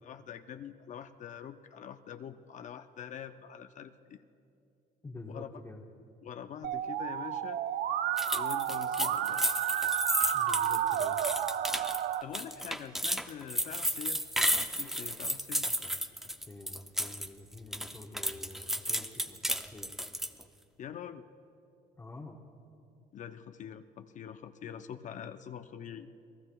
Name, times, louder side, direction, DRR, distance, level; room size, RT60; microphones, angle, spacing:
voice 1, 0.0-4.2 5.3-5.5 6.2-7.6 8.3-9.4 12.2-14.2 14.5-15.7 20.8-21.2 23.1-26.1, left 8 dB, 45° left, 9 dB, 0.5 m, -45 dB
voice 2, 5.0-5.8 10.3-11.2 15.6-15.9 16.5-19.9 22.0-22.4, left 2 dB, 15° left, -1 dB, 1.0 m, -48 dB
Musical instrument, 6.6-12.2, right 10 dB, 65° right, 0.6 m, -31 dB
sound 1, 8.2-17.3 17.6-20.4, equal, ahead, 0.5 m, -33 dB
28.0 x 18.5 x 2.3 m, 2.7 s
cardioid pair, 110°, 17 cm